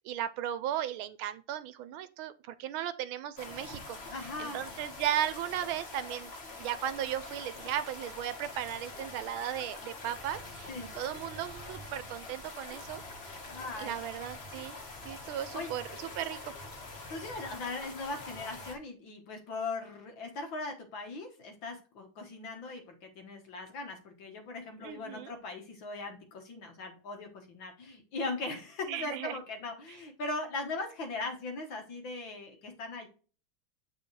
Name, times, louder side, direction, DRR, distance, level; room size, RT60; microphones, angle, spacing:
voice 1, 0.0-6.3 6.6-13.0 13.8-14.8 15.0-16.5 24.8-25.3 28.9-29.4, right 11 dB, 80° right, 13 dB, 1.4 m, -36 dB
sound 1, 3.4-18.7, left 2 dB, 35° left, 1.4 m, -45 dB
voice 2, 4.1-4.6 10.7-10.9 13.5-14.0 15.5-15.7 17.1-33.1, left 3 dB, 65° left, 4 dB, 2.0 m, -39 dB
9.1 x 4.2 x 3.2 m, 0.36 s
omnidirectional pair, 2.3 m